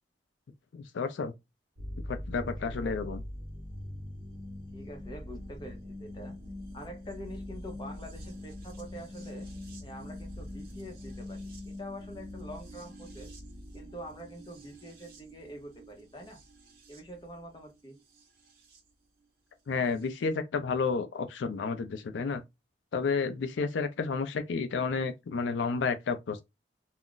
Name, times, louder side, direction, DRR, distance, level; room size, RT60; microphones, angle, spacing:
voice 1, 0.7-1.3 2.1-3.2 19.7-22.4 22.9-26.4, left 5 dB, 85° left, 0.4 m, -31 dB
sound 1, 1.8-18.8 20.0-20.1, left 1 dB, 55° right, 0.9 m, -43 dB
voice 2, 2.4-3.0 4.7-6.3 6.7-9.5 9.8-13.3 13.7-16.4 16.9-18.0, equal, 25° left, 0.7 m, -45 dB
2.4 x 2.1 x 3.7 m
head